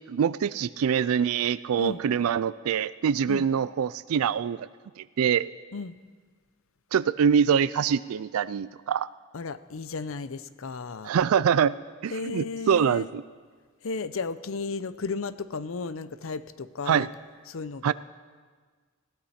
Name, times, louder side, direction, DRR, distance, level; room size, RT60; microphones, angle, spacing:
voice 1, 0.1-4.7 5.0-5.5 6.9-9.1 11.0-11.7 12.0-13.2 16.9-17.1 17.8-17.9, right 7 dB, 85° right, 16 dB, 0.4 m, -24 dB
voice 2, 9.3-11.1 12.1-13.1 13.8-17.1 17.5-17.9, left 4 dB, 70° left, 14 dB, 0.6 m, -34 dB
21.0 x 15.5 x 4.3 m, 1.5 s
head